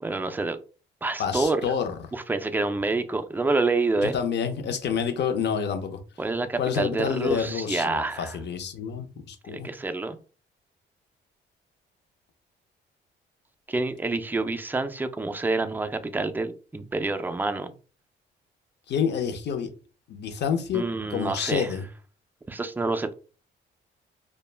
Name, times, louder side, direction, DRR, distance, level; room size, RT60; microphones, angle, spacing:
voice 1, 0.0-0.6 1.0-1.6 2.1-4.1 6.2-8.4 9.5-10.2 13.7-17.7 20.7-21.7 22.5-23.1, right 3 dB, 10° right, 0.3 m, -27 dB
voice 2, 1.2-1.9 4.0-6.0 6.6-9.7 18.9-19.7 20.1-20.8 21.1-21.9, left 7 dB, 60° left, 0.6 m, -28 dB
2.1 x 2.0 x 3.2 m
cardioid pair, 90°, 20 cm